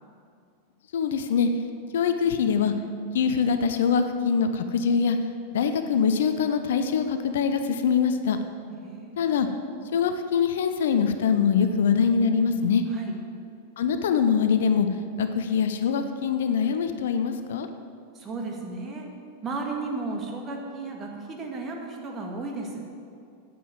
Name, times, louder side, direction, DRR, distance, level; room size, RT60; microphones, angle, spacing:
voice 1, 0.9-1.5 1.9-2.7 3.1-5.2 5.5-8.4 9.2-9.5 9.9-12.8 13.8-14.9 15.2-17.7, left 6 dB, 60° left, 8 dB, 0.7 m, -23 dB
voice 2, 8.7-9.3 12.9-13.1 18.1-19.1 19.4-22.9, right 3 dB, 25° right, 1 dB, 2.0 m, -34 dB
9.2 x 8.6 x 7.5 m, 2.4 s
figure-of-eight pair, 90°, 0 cm